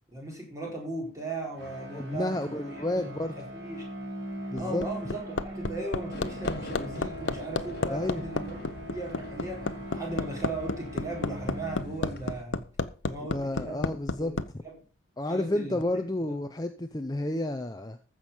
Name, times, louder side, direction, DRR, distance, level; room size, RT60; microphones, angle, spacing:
voice 1, 0.1-3.1 3.4-3.8 4.5-8.6 8.9-12.6 13.0-13.9 14.2-14.7 15.3-16.0, right 2 dB, 15° right, -1 dB, 4.4 m, -37 dB
sound 1, 1.5-12.3, equal, 60° right, 4.8 m, -41 dB
voice 2, 1.9-3.3 4.5-4.9 7.9-8.2 13.3-14.3 15.2-18.0, left 1 dB, 20° left, 7 dB, 0.6 m, -31 dB
Hammer, 4.3-14.5 15.8-15.9, left 3 dB, 70° left, 0.9 m, -31 dB
sound 2, 6.1-12.4, left 1 dB, 50° left, 1.4 m, -44 dB
14.5 x 6.4 x 5.6 m, 0.35 s
head